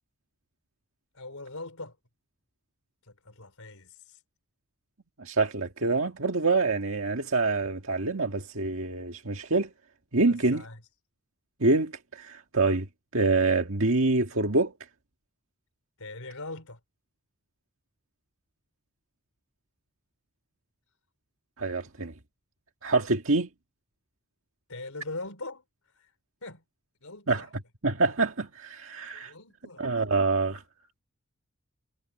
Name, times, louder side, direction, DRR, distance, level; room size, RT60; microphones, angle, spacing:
voice 1, 1.1-2.0 3.0-4.2 10.3-10.8 16.0-16.8 24.7-26.1 26.4-26.6 27.0-27.5 29.1-29.9, left 2 dB, 80° left, 4.1 m, -41 dB
voice 2, 5.2-9.7 10.1-10.6 11.6-12.9 13.1-14.7 21.6-22.1 22.8-23.5 27.3-27.4 27.8-29.3 29.8-30.6, right 3 dB, 65° right, 1.9 m, -26 dB
head